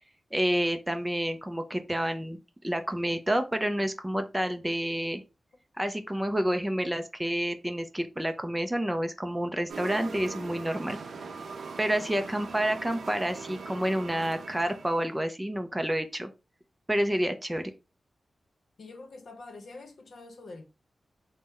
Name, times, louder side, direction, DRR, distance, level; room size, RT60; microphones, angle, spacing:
voice 1, 0.3-2.4 2.6-5.2 5.8-11.0 11.8-16.3 16.9-17.7, right 1 dB, 10° right, 0.4 m, -29 dB
sound 1, 9.7-15.2, right 4 dB, 75° right, 0.5 m, -41 dB
voice 2, 18.8-20.6, left 3 dB, 65° left, 0.8 m, -45 dB
4.2 x 2.1 x 3.6 m
wide cardioid pair, 170°, 0 cm